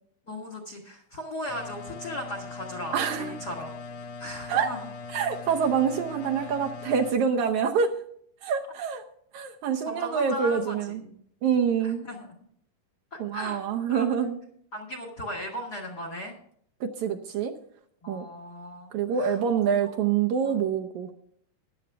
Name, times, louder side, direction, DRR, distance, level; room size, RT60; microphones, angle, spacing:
voice 1, 0.3-3.8 4.2-4.9 9.8-11.2 11.8-12.3 13.1-13.6 13.9-14.0 14.7-16.3 18.0-18.9 19.2-19.4 19.8-19.9 20.5-20.6, equal, 40° left, 3 dB, 1.6 m, -37 dB
sound 1, 1.5-7.1, left 4 dB, 60° left, 1.8 m, -40 dB
voice 2, 2.9-3.3 4.5-4.7 5.1-7.9 8.4-9.0 9.3-11.0 11.4-12.1 13.2-14.4 16.8-17.5 18.1-18.3 18.9-21.1, right 7 dB, 70° right, 4 dB, 2.0 m, -26 dB
14.5 x 10.5 x 3.5 m, 0.66 s
omnidirectional pair, 3.8 m